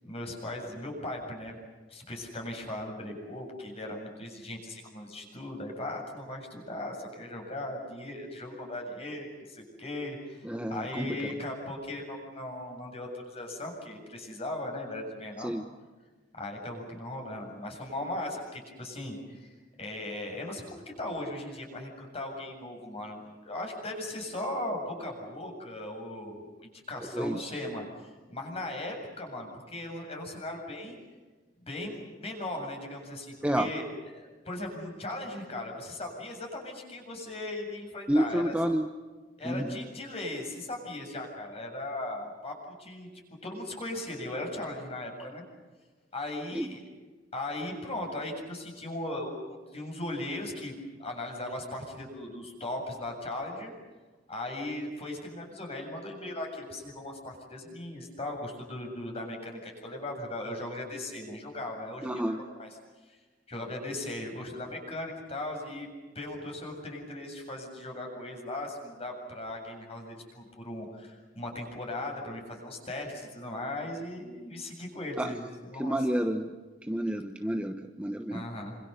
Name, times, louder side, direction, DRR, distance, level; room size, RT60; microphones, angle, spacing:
voice 1, 0.0-1.6 1.9-15.5 16.4-31.0 31.7-33.8 34.1-38.5 39.4-42.5 42.8-43.1 43.4-45.4 46.1-46.8 47.3-53.7 54.3-62.7 63.1-63.2 63.5-65.9 66.1-76.0 78.3-78.7, left 1 dB, 35° left, 2 dB, 7.6 m, -38 dB
voice 2, 10.4-11.3 15.4-15.6 27.0-27.5 33.4-33.7 38.1-38.9 39.4-39.8 46.5-46.7 62.0-62.4 75.2-75.4 75.8-76.5 76.8-78.5, equal, 5° right, 5 dB, 1.1 m, -30 dB
28.5 x 27.0 x 6.9 m, 1.3 s
head